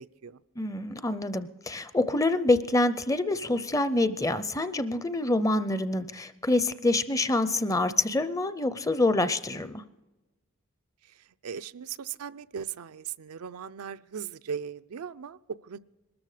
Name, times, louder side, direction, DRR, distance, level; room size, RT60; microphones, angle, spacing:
voice 1, 0.0-0.4 11.4-15.4 15.7-15.8, right 7 dB, 85° right, 12 dB, 0.5 m, -38 dB
voice 2, 0.6-9.8, left 2 dB, 15° left, 13 dB, 0.5 m, -26 dB
22.0 x 13.5 x 4.9 m, 1.1 s
head